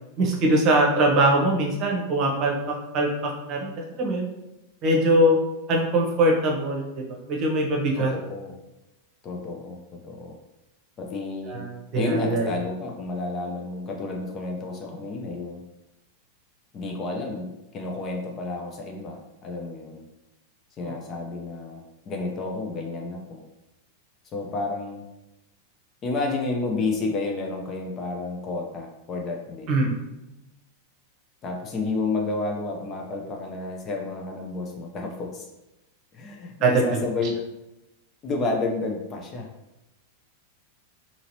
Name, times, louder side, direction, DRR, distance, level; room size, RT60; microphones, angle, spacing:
voice 1, 0.2-4.3 4.8-5.4 5.7-8.1 11.5-12.5 20.8-21.0 29.7-29.9 36.6-37.0, right 1 dB, 40° right, 0 dB, 0.8 m, -22 dB
voice 2, 8.0-8.5 9.2-10.4 11.0-11.6 11.9-15.6 16.7-20.0 20.8-23.4 24.3-25.0 26.0-29.8 31.4-35.5 36.1-37.4 38.2-39.5, left 3 dB, 30° left, 1 dB, 0.6 m, -31 dB
3.8 x 2.8 x 2.9 m, 0.95 s
figure-of-eight pair, 90°, 0 cm